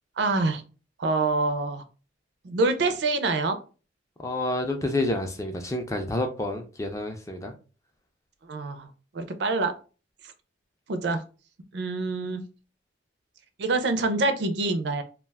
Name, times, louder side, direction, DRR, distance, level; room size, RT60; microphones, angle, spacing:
voice 1, 0.2-0.6 1.0-1.8 2.4-3.6 8.5-9.7 10.9-11.2 11.7-12.5 13.6-15.0, right 3 dB, 65° right, 0.4 m, -26 dB
voice 2, 4.2-7.5, left 1 dB, 15° left, 0.3 m, -29 dB
2.3 x 2.2 x 3.3 m
head